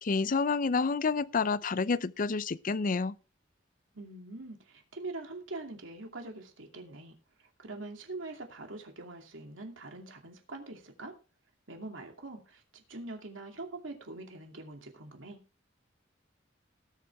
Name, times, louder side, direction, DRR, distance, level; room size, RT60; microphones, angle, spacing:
voice 1, 0.0-3.2, left 4 dB, 45° left, 0.5 m, -29 dB
voice 2, 3.9-7.1 7.6-11.1 11.7-15.4, right 2 dB, 85° right, 2.6 m, -43 dB
19.0 x 7.4 x 3.5 m
head